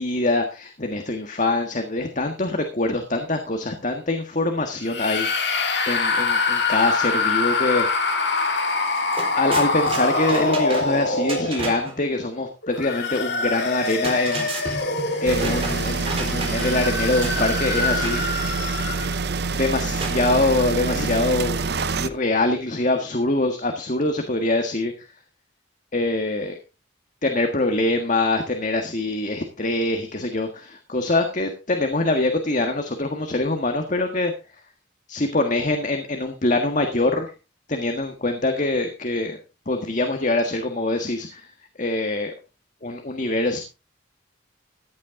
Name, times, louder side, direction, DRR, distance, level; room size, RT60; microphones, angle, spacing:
voice 1, 0.0-7.9 9.3-14.5 15.2-18.2 19.6-21.6 22.0-24.9 25.9-26.6 27.2-34.3 35.1-37.3 37.7-39.4 39.7-41.5 41.8-42.3 42.8-43.6, left 2 dB, 40° left, 5 dB, 1.6 m, -24 dB
sound 1, 4.9-11.9 12.6-19.1, left 3 dB, 60° left, 2.5 m, -25 dB
sound 2, 8.5-8.6 8.9-12.0 13.7-16.9 17.2-18.2 20.0-20.9, right 2 dB, 30° right, 4.1 m, -32 dB
sound 3, 15.3-22.1, right 4 dB, 55° right, 0.8 m, -26 dB
15.0 x 11.0 x 3.8 m, 0.29 s
head